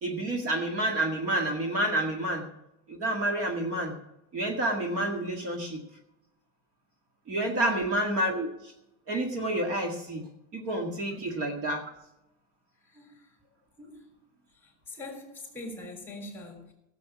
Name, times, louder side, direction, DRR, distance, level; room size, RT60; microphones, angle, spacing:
voice 1, 0.0-2.4 2.9-3.9 4.3-5.8 7.3-8.5 9.1-10.2 10.5-11.8, right 1 dB, 40° right, 2.0 m, -29 dB
voice 2, 12.9-13.3 13.8-14.1 14.6-16.7, left 1 dB, 5° left, 3.6 m, -42 dB
16.5 x 7.7 x 6.1 m
cardioid pair, 160°, 37 cm